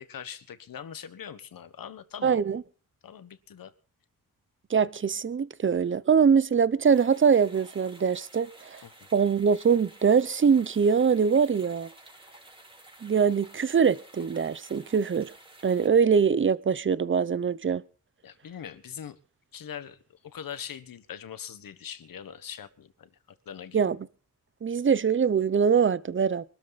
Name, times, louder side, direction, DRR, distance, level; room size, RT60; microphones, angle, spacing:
voice 1, 0.0-2.4 3.0-3.7 8.8-8.9 18.2-19.2 19.5-20.0 20.2-23.1 23.4-23.8, left 8 dB, 80° left, 1.5 m, -41 dB
voice 2, 2.2-2.6 4.7-8.8 9.1-11.9 13.0-15.3 15.6-17.8 23.7-24.0 24.6-26.4, right 6 dB, 35° right, 0.8 m, -23 dB
sound 1, 6.8-15.9, right 1 dB, 15° right, 4.1 m, -52 dB
23.5 x 13.0 x 4.1 m
wide cardioid pair, 110°, 34 cm